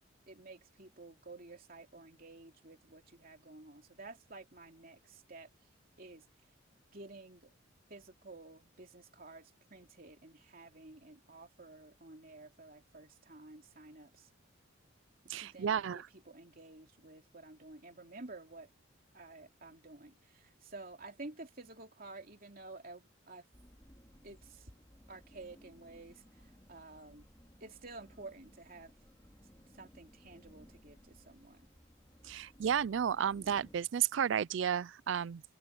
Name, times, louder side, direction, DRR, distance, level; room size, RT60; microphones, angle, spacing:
voice 1, 0.3-5.5 6.0-6.3 6.9-7.5 7.9-14.3 15.3-18.7 19.1-23.5 24.2-24.7 25.1-27.3 27.6-28.9 29.7-31.7, right 2 dB, 45° right, 3.0 m, -52 dB
voice 2, 15.3-16.1 32.2-35.4, right 8 dB, 65° right, 0.4 m, -32 dB
sound 1, 23.5-33.8, equal, 15° left, 3.4 m, -60 dB
open air
head